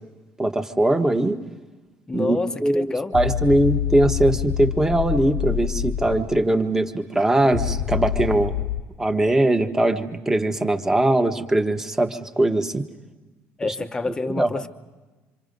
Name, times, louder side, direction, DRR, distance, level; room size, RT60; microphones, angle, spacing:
voice 1, 0.4-1.4 2.1-8.6 9.0-12.9 13.6-13.7 14.3-14.5, right 1 dB, 10° right, 1.2 m, -21 dB
voice 2, 2.1-3.3 13.6-14.7, left 3 dB, 15° left, 0.9 m, -28 dB
sound 1, 3.1-6.4 7.5-8.8, left 9 dB, 80° left, 1.0 m, -26 dB
27.0 x 26.0 x 5.3 m
cardioid pair, 150°, 5 cm